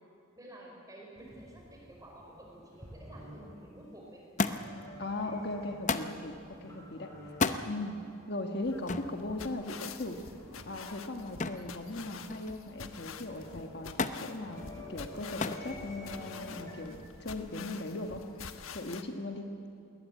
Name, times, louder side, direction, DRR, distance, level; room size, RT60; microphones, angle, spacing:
voice 1, 0.3-4.3, right 1 dB, 15° right, -1 dB, 5.1 m, -51 dB
sound 1, 1.1-3.5 4.4-5.9 6.3-8.1 8.4-8.5 9.0-10.8 11.2-11.3 11.5-11.6 11.9-12.2 13.0-13.6 13.9-16.7, left 1 dB, 15° left, 7.8 m, -49 dB
Thump thud, 4.4-4.9 5.9-6.2 7.3-7.6 8.9-9.1 11.4-11.7 12.1-12.6 14.0-14.3 15.4-15.7 16.6-17.1 18.1-18.2, left 4 dB, 35° left, 0.7 m, -32 dB
voice 2, 5.0-7.3 7.7-8.0 8.3-10.2 10.7-18.2 18.7-19.5, left 2 dB, 50° left, 4 dB, 1.4 m, -38 dB
sound 2, 8.6-19.0, left 5 dB, 85° left, 1.2 m, -47 dB
21.0 x 18.5 x 9.2 m, 2.5 s
head